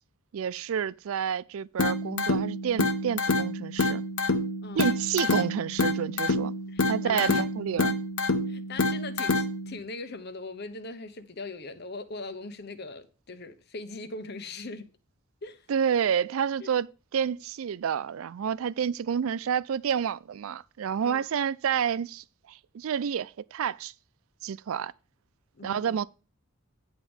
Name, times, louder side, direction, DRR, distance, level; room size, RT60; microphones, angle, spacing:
voice 1, 0.3-4.0 4.7-6.5 6.9-8.0 15.7-23.9 24.4-24.9 25.6-26.0, right 8 dB, 75° right, 0.4 m, -29 dB
sound 1, 1.8-9.8, left 2 dB, 80° left, 1.1 m, -27 dB
voice 2, 6.7-7.2 8.5-14.8 15.4-15.6 16.6-16.7 21.0-21.2 25.6-26.0, left 3 dB, 50° left, 1.0 m, -40 dB
10.0 x 3.6 x 7.0 m
head